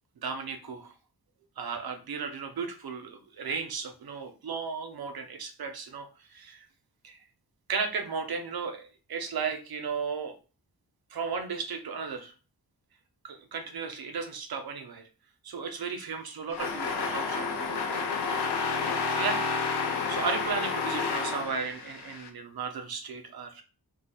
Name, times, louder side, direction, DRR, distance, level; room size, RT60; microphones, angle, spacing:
voice 1, 0.2-0.9 1.6-6.6 7.0-7.2 7.7-10.4 11.1-12.3 13.2-15.1 15.4-18.4 19.1-19.4 20.1-23.6, right 5 dB, 70° right, 6 dB, 0.7 m, -35 dB
sound 1, 16.5-22.3, left 4 dB, 90° left, 0.6 m, -30 dB
2.7 x 2.2 x 4.0 m, 0.34 s
wide cardioid pair, 80°, 38 cm